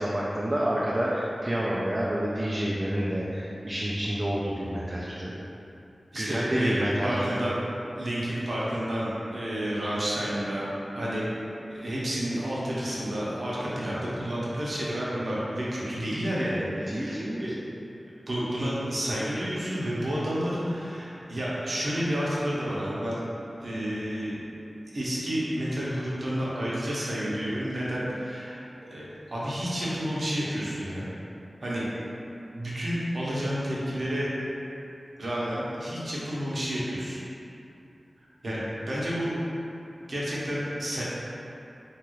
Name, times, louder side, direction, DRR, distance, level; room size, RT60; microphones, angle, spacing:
voice 1, 0.0-5.3 6.1-7.5 16.9-17.5 38.5-38.6, right 1 dB, 30° right, -6 dB, 0.3 m, -29 dB
voice 2, 6.1-6.8 7.0-7.6 8.0-11.3 11.7-17.6 18.3-23.2 23.6-24.4 24.9-31.1 31.6-31.9 32.5-34.3 35.2-37.2 38.4-39.3 40.1-41.0, equal, 65° right, -7 dB, 0.7 m, -30 dB
2.9 x 2.3 x 3.0 m, 2.8 s
wide cardioid pair, 70°, 0 cm